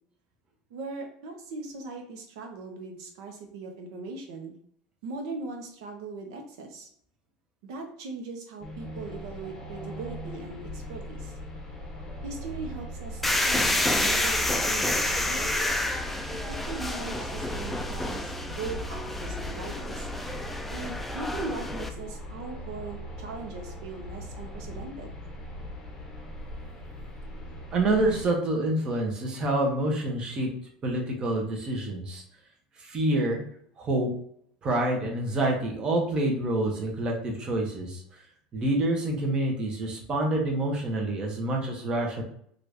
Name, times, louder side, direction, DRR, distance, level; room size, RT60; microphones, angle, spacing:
voice 1, 0.7-4.5 5.0-6.9 7.6-11.3 12.2-15.6 16.5-20.1 20.7-25.1, right 3 dB, 80° right, 3 dB, 0.8 m, -39 dB
sound 1, 8.6-28.3, equal, 20° left, 0.8 m, -40 dB
sound 2, 13.2-21.9, left 1 dB, 5° left, 0.3 m, -29 dB
voice 2, 27.7-30.5 30.8-32.2 32.8-33.4 33.8-34.1 34.6-38.0 38.5-42.2, right 1 dB, 30° right, 0 dB, 0.9 m, -27 dB
2.8 x 2.5 x 3.4 m, 0.65 s
supercardioid pair, 125°, 3 cm